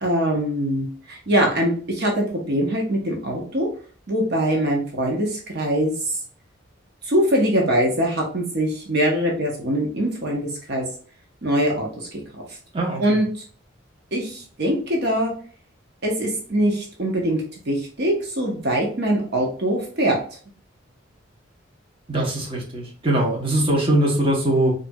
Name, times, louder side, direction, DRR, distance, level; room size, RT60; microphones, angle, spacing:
voice 1, 0.0-3.7 4.1-6.2 7.0-10.9 11.4-12.2 12.5-12.6 13.0-13.3 14.1-15.3 16.0-20.2, right 1 dB, 60° right, 0 dB, 0.8 m, -23 dB
voice 2, 12.7-13.2 22.1-24.7, right 1 dB, 30° right, -3 dB, 0.9 m, -21 dB
4.3 x 2.5 x 2.3 m, 0.43 s
head